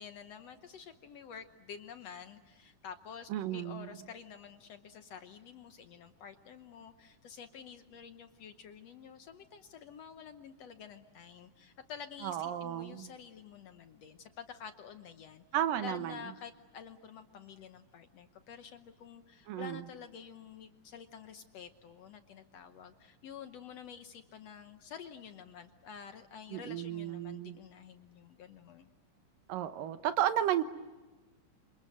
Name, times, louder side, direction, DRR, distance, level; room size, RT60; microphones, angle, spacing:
voice 1, 0.0-15.5 15.8-28.9, left 7 dB, 65° left, 8 dB, 1.8 m, -49 dB
voice 2, 3.3-3.9 12.2-13.1 15.5-16.2 19.5-19.8 26.5-27.6 29.5-30.6, right 11 dB, 85° right, 10 dB, 2.9 m, -33 dB
28.5 x 26.5 x 7.8 m, 1.2 s
omnidirectional pair, 3.8 m